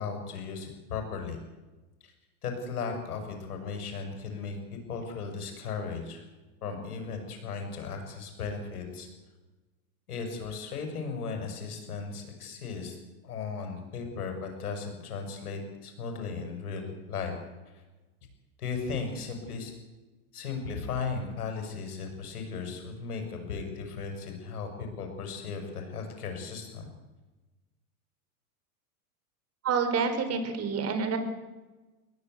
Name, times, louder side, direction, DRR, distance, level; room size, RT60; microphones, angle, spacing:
voice 1, 0.0-1.4 2.0-2.1 2.4-6.2 6.6-9.1 10.1-13.0 13.2-17.3 18.6-19.7 20.3-26.9, left 5 dB, 85° left, 5 dB, 7.4 m, -36 dB
voice 2, 29.6-31.2, right 5 dB, 35° right, 8 dB, 4.8 m, -28 dB
23.0 x 17.5 x 8.3 m, 1.2 s
hypercardioid pair, 110°, 44 cm